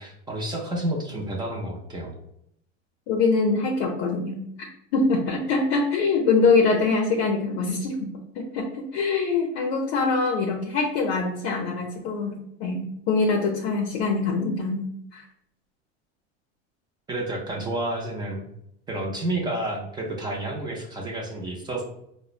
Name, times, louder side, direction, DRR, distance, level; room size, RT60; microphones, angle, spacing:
voice 1, 0.0-2.1 17.1-18.5 18.9-21.8, right 1 dB, 15° right, -1 dB, 0.4 m, -30 dB
voice 2, 3.1-4.5 4.9-8.1 8.3-14.8 15.1-15.2, left 4 dB, 55° left, 0 dB, 0.6 m, -24 dB
4.8 x 2.1 x 2.4 m, 0.75 s
supercardioid pair, 145°, 33 cm